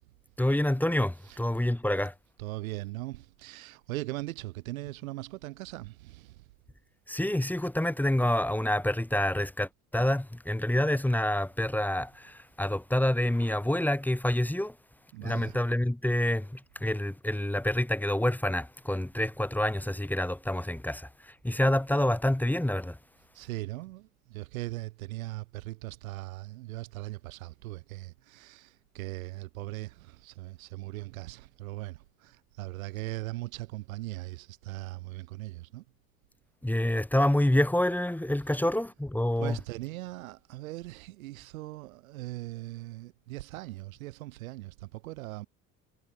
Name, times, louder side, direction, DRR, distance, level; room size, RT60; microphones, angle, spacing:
voice 1, 0.4-2.1 7.1-14.7 15.2-23.0 36.6-39.6, left 1 dB, 5° left, 1.3 m, -27 dB
voice 2, 2.4-6.5 15.1-15.6 23.3-35.8 39.4-45.5, right 19 dB, 75° right, 1.0 m, -40 dB
figure-of-eight pair, 55°, 42 cm